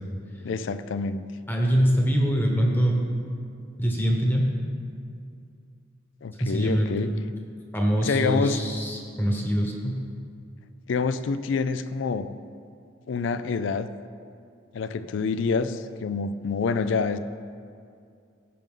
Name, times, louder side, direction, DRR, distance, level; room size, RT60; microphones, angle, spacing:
voice 1, 0.4-1.2 6.2-7.1 8.0-8.6 10.9-12.3 13.1-13.9 14.7-17.2, left 4 dB, 65° left, 13 dB, 0.4 m, -27 dB
voice 2, 1.5-3.1 3.8-4.5 6.4-6.9 7.7-10.0, equal, 10° left, 0 dB, 1.1 m, -23 dB
15.5 x 5.4 x 3.8 m, 2.4 s
head